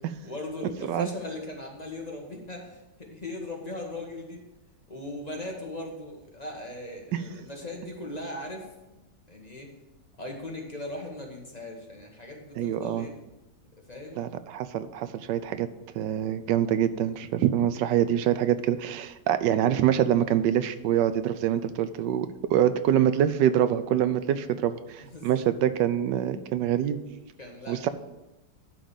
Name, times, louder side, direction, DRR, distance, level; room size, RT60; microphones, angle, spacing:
voice 1, 0.2-4.4 4.9-8.7 9.3-9.7 10.2-13.1 13.9-14.4 25.0-25.4 27.4-27.9, left 2 dB, 25° left, 0 dB, 1.3 m, -39 dB
voice 2, 12.6-13.1 14.2-15.7 15.9-27.0 27.7-27.9, right 10 dB, 90° right, 12 dB, 1.3 m, -25 dB
11.0 x 3.9 x 7.0 m, 1.0 s
omnidirectional pair, 1.9 m